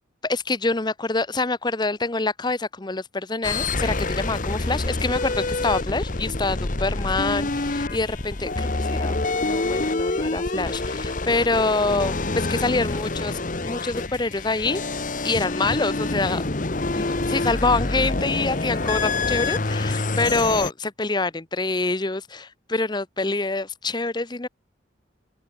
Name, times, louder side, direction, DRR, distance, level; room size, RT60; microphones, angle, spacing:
voice 1, 0.2-14.8 15.2-16.4 16.9-24.5, left 3 dB, 20° left, 0.7 m, -26 dB
sound 1, 3.4-20.7, left 2 dB, 40° left, 1.1 m, -26 dB
open air
head